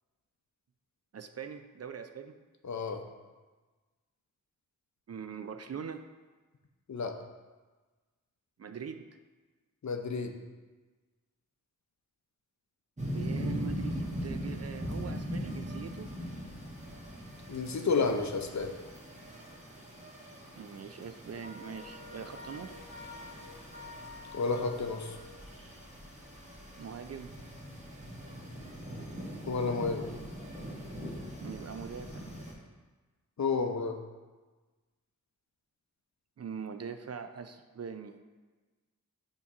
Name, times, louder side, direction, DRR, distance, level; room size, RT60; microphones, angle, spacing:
voice 1, 1.1-2.4 5.1-6.0 8.6-9.0 13.1-16.2 20.6-22.7 26.8-27.3 31.4-32.2 36.4-38.2, right 6 dB, 50° right, 8 dB, 0.4 m, -42 dB
voice 2, 2.6-3.0 6.9-7.1 9.8-10.3 17.5-18.7 24.3-25.2 29.5-30.0 33.4-34.0, left 4 dB, 55° left, 5 dB, 0.6 m, -31 dB
sound 1, 13.0-32.5, equal, 20° right, 1.3 m, -41 dB
Wind instrument woodwind instrument, 21.4-25.4, left 3 dB, 35° left, 1.1 m, -49 dB
7.0 x 3.0 x 4.8 m, 1.3 s
wide cardioid pair, 60°, 34 cm